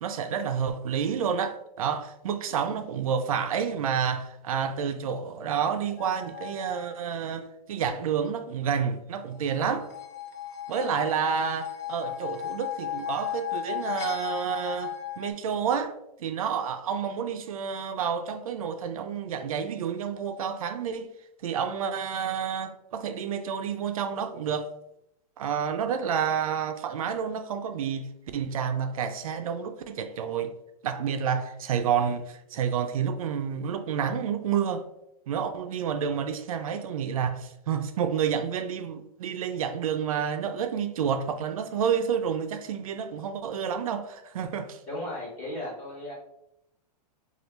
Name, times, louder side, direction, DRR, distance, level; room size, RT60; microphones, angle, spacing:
voice 1, 0.0-9.9 10.7-15.9 16.2-21.1 21.4-24.7 25.4-28.1 28.3-30.5 30.8-34.8 35.3-44.8, right 7 dB, 60° right, 0.4 m, -29 dB
sound 1, 6.0-7.0 9.5-15.3, left 10 dB, 30° left, 0.4 m, -35 dB
voice 2, 44.9-46.1, left 1 dB, 10° left, 1.4 m, -35 dB
6.4 x 2.4 x 3.0 m
supercardioid pair, 180°, 21 cm